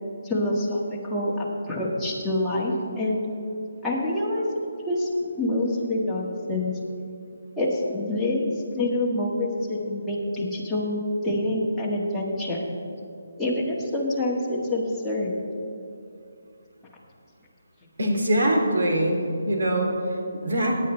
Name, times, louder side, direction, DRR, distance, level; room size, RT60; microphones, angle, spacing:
voice 1, 0.2-3.2 3.8-4.5 4.8-5.1 5.4-6.7 7.6-11.0 11.2-12.6 13.4-15.3, left 1 dB, 5° left, -8 dB, 1.7 m, -26 dB
voice 2, 18.0-20.0 20.4-20.7, right 1 dB, 70° right, 0 dB, 2.6 m, -23 dB
17.5 x 9.7 x 3.3 m, 2.6 s
hypercardioid pair, 160°, 0 cm